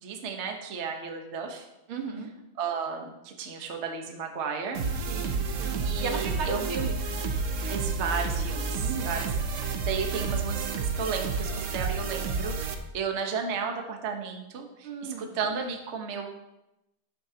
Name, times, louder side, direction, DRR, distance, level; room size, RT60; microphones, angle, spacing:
voice 1, 0.0-1.7 2.6-5.1 5.8-6.7 7.6-9.3 9.5-16.3, right 6 dB, 40° right, 3 dB, 1.1 m, -34 dB
voice 2, 1.9-2.3 5.1-7.1 8.8-9.2 14.8-15.3, right 4 dB, 80° right, 3 dB, 2.2 m, -35 dB
sound 1, 4.7-12.7, right 4 dB, 55° right, 0.8 m, -30 dB
12.5 x 10.0 x 2.9 m, 0.91 s
omnidirectional pair, 2.3 m